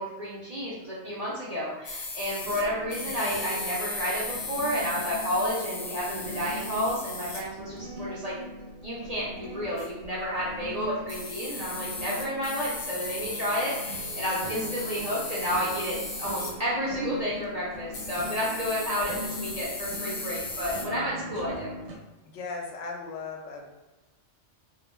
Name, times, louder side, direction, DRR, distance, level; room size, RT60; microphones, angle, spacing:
voice 1, 0.0-8.4 8.8-21.7, equal, 50° right, -7 dB, 0.5 m, -31 dB
sound 1, 1.8-7.4 9.8-10.1 10.7-10.8 11.1-16.6 17.9-20.8, left 3 dB, 55° left, 0.6 m, -36 dB
sound 2, 2.4-21.9, equal, 70° right, 0.8 m, -41 dB
voice 2, 22.2-23.7, left 4 dB, 85° left, 1 dB, 0.9 m, -37 dB
2.3 x 2.2 x 3.0 m, 1.1 s
omnidirectional pair, 1.2 m